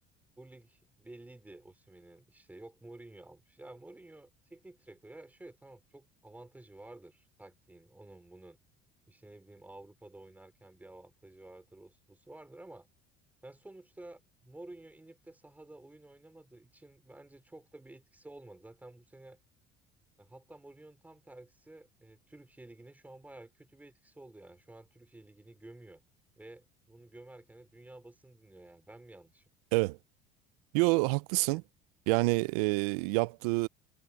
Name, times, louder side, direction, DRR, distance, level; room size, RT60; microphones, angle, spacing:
voice 1, 0.4-8.6 9.1-12.9 13.4-19.4 20.2-26.0 26.4-29.5 31.4-31.6, right 2 dB, 10° right, 4.1 m, -52 dB
voice 2, 30.7-31.6 32.1-33.7, right 25 dB, 90° right, 0.5 m, -27 dB
supercardioid pair, 110°, 19 cm